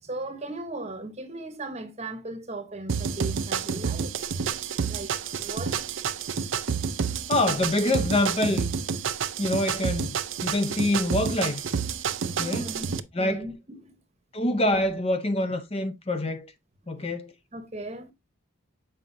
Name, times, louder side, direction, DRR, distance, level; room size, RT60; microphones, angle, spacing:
voice 1, 0.0-4.2 4.8-5.9 12.4-14.0 17.0-17.1 17.5-18.1, right 2 dB, 30° right, 1.0 m, -38 dB
sound 1, 2.9-13.0, right 6 dB, 60° right, 0.5 m, -29 dB
voice 2, 7.3-8.7 9.4-11.6 12.4-12.7 13.1-13.5 14.3-16.5 16.9-17.3, left 1 dB, 25° left, 0.6 m, -26 dB
7.7 x 4.9 x 2.6 m
head